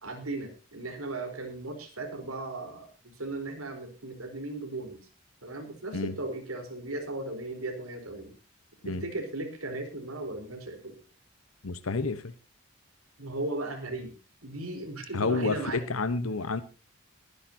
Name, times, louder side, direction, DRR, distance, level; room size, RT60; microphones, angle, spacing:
voice 1, 0.0-5.1 5.4-8.3 8.8-11.0 13.2-14.1 14.4-15.8, right 2 dB, 90° right, 5 dB, 4.2 m, -37 dB
voice 2, 11.6-12.3 15.1-16.6, left 3 dB, 85° left, 12 dB, 1.0 m, -29 dB
22.0 x 11.0 x 2.8 m, 0.32 s
head